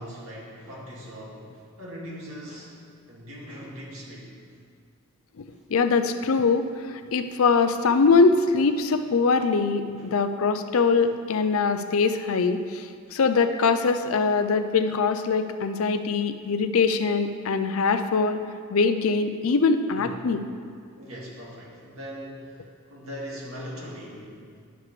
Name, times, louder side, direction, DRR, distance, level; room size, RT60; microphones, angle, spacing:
voice 1, 0.0-2.7 3.1-4.3 9.9-10.1 11.0-11.1 13.1-13.2 19.9-20.3 21.0-24.4, equal, 80° right, -5 dB, 2.0 m, -40 dB
voice 2, 5.7-18.4 18.7-20.4, left 4 dB, 75° left, 8 dB, 0.5 m, -22 dB
11.0 x 6.8 x 3.2 m, 2.1 s
head